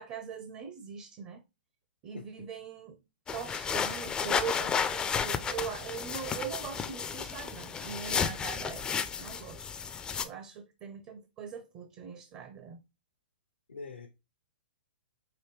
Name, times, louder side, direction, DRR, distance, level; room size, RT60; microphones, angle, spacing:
voice 1, 0.0-1.4 2.0-3.0 3.3-8.9 9.2-9.7 10.2-12.8, right 7 dB, 35° right, 0.6 m, -41 dB
voice 2, 2.1-2.5 13.7-14.1, left 4 dB, 85° left, 0.7 m, -44 dB
sound 1, 3.3-10.2, left 6 dB, 15° left, 0.4 m, -33 dB
5.0 x 2.7 x 3.1 m
hypercardioid pair, 125°, 6 cm